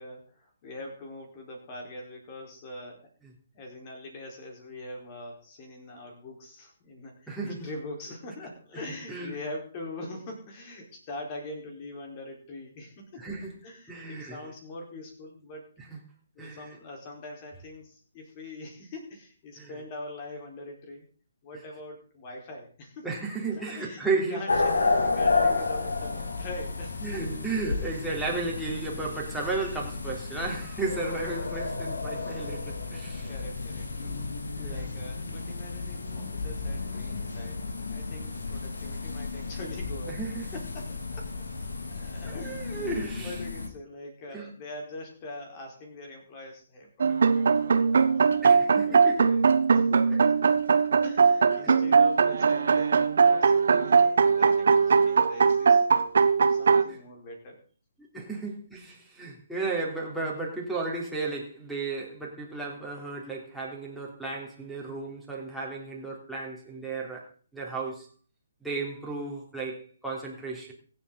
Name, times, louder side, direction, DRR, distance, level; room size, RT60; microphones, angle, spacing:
voice 1, 0.0-3.1 3.5-13.2 13.6-15.6 16.3-21.1 21.4-23.1 23.5-27.3 33.3-34.2 34.6-37.6 37.9-40.2 40.5-49.4 49.7-50.0 51.0-55.8 56.3-57.6 58.1-58.2, left 2 dB, 30° left, 1 dB, 4.4 m, -43 dB
voice 2, 7.3-7.7 8.7-8.8 9.1-9.4 13.2-13.5 13.9-14.4 15.8-15.9 16.4-16.7 19.6-19.8 23.0-24.4 27.0-33.3 34.6-34.9 40.1-40.5 42.2-43.3 44.3-44.5 48.4-49.4 50.1-50.2 51.6-51.7 56.9-57.0 58.1-68.1 68.6-70.7, right 3 dB, ahead, -5 dB, 3.5 m, -34 dB
sound 1, 24.5-43.7, left 3 dB, 60° left, 2.6 m, -32 dB
sound 2, 47.0-56.8, right 5 dB, 55° right, 1.0 m, -21 dB
24.5 x 8.2 x 4.0 m, 0.41 s
figure-of-eight pair, 135°, 0 cm